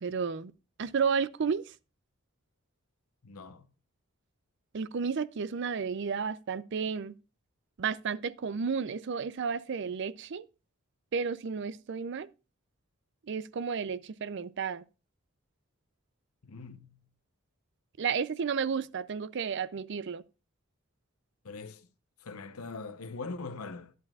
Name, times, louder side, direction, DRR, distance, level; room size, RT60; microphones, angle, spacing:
voice 1, 0.0-0.5 0.8-1.6 4.7-7.1 7.8-10.5 11.1-12.3 13.3-14.8 18.0-20.2, right 6 dB, 55° right, 0.4 m, -32 dB
voice 2, 3.2-3.7 16.4-17.1 21.4-21.9 22.2-23.9, left 3 dB, 85° left, 0.8 m, -42 dB
11.0 x 10.5 x 2.3 m
head